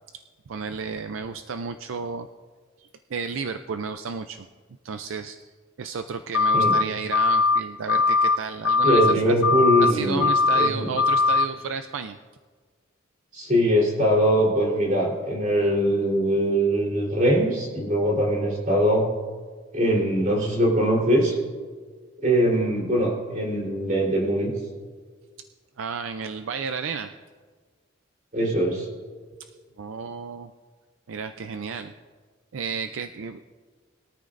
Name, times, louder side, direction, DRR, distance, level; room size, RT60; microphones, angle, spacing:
voice 1, 0.5-2.3 2.8-4.5 4.8-5.4 5.8-9.4 9.8-12.2 25.8-27.1 29.8-30.5 31.1-31.9 32.5-33.4, right 5 dB, 70° right, 8 dB, 0.5 m, -32 dB
sound 1, 6.3-6.8 7.1-7.6 7.9-8.4 8.6-9.1 9.4-9.9 10.2-10.7 11.0-11.5, left 4 dB, 80° left, 0.6 m, -20 dB
voice 2, 8.8-10.3 10.5-10.9 13.3-19.1 19.7-21.4 22.2-24.5 28.3-28.9, equal, 40° right, -2 dB, 3.7 m, -22 dB
21.5 x 13.0 x 2.6 m, 1.5 s
head